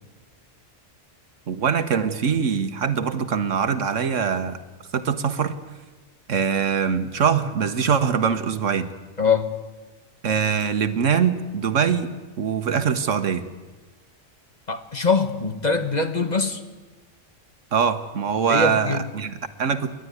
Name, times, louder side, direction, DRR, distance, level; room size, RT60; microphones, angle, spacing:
voice 1, 1.5-4.6 4.9-5.6 6.3-8.9 10.2-12.1 12.4-13.5 17.7-19.9, right 7 dB, 70° right, 10 dB, 1.5 m, -23 dB
voice 2, 9.2-9.5 14.7-16.6 18.5-19.0, left 4 dB, 35° left, 7 dB, 1.4 m, -23 dB
29.0 x 12.0 x 9.5 m, 1.3 s
omnidirectional pair, 1.3 m